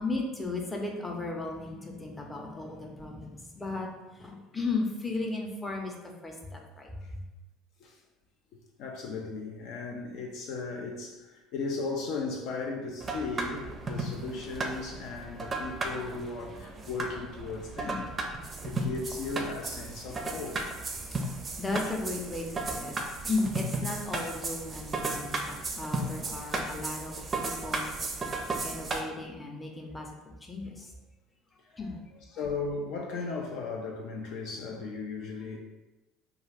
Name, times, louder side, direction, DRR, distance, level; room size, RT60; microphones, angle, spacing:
voice 1, 0.0-5.9 6.2-7.2 17.8-18.0 18.5-18.7 20.9-30.9 31.7-32.0, left 3 dB, 20° left, 0.6 m, -36 dB
voice 2, 8.8-18.1 18.6-20.6 21.3-21.4 32.3-35.6, left 4 dB, 65° left, 0.3 m, -36 dB
sound 1, 13.0-29.0, right 2 dB, 30° right, 0.4 m, -35 dB
2.3 x 2.3 x 3.3 m
hypercardioid pair, 70°, 0 cm